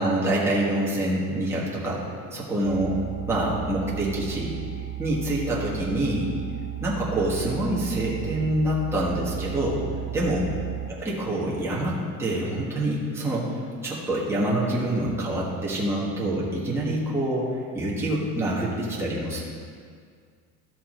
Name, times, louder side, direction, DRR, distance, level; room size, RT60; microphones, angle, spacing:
voice 1, 0.0-3.0 3.3-4.6 5.0-6.3 6.8-9.8 10.1-10.5 11.3-13.5 13.8-17.5 17.7-19.4, right 1 dB, 5° right, -6 dB, 1.5 m, -26 dB
sound 1, 2.6-10.9, right 13 dB, 60° right, 1.6 m, -35 dB
13.5 x 5.7 x 4.3 m, 2.1 s
cardioid pair, 175°, 35 cm